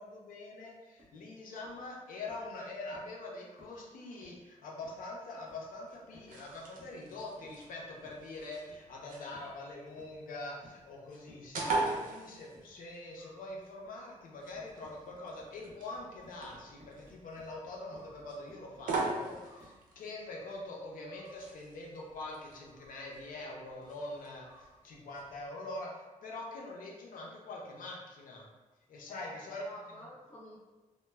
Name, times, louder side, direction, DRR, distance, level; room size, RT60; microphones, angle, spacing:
voice 1, 0.0-28.5 28.9-29.6, left 2 dB, 85° left, -2 dB, 0.5 m, -44 dB
sound 1, 1.0-1.2 1.6-1.9 2.3-2.5 2.9-3.2 3.6-3.8 4.2-4.5 4.8-5.1 5.5-5.7 6.1-6.4 6.8-7.0 7.4-7.7 8.0-8.3 8.7-8.9 9.3-9.6 10.0-10.3 10.6-10.9 11.3-11.5 11.9-12.2 12.5-12.8 14.5-19.8, equal, 20° right, 0.7 m, -60 dB
sound 2, 5.7-25.4, right 3 dB, 85° right, 0.5 m, -42 dB
voice 2, 29.1-30.6, left 1 dB, 25° left, -9 dB, 0.5 m, -50 dB
2.1 x 2.0 x 3.2 m, 1.2 s
wide cardioid pair, 175°, 14 cm